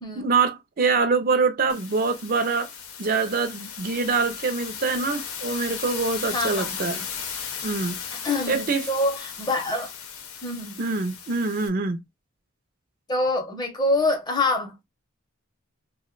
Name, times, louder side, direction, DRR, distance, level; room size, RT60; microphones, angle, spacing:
voice 1, 0.2-2.7 3.0-7.1 7.6-8.0 8.5-8.9 10.8-12.0, right 4 dB, 40° right, 0.4 m, -24 dB
sound 1, 1.7-11.7, left 7 dB, 90° left, 0.7 m, -36 dB
voice 2, 6.3-6.9 8.1-9.9 10.4-10.8 13.1-14.8, left 2 dB, 20° left, 0.7 m, -26 dB
2.7 x 2.1 x 3.7 m
head